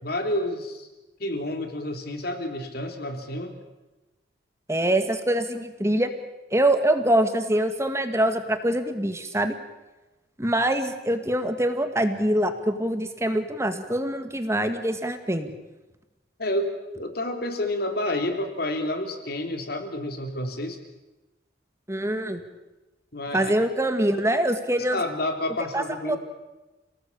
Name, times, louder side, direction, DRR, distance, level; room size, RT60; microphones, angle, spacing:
voice 1, 0.0-0.9 1.2-3.5 16.4-16.7 17.0-20.8 23.1-23.5 24.9-26.2, left 1 dB, 55° left, 5 dB, 3.6 m, -29 dB
voice 2, 4.7-6.1 6.5-9.6 10.4-15.5 21.9-22.4 23.3-25.0 25.7-26.2, right 1 dB, 15° right, 8 dB, 1.9 m, -24 dB
29.0 x 18.5 x 8.7 m, 1.1 s
head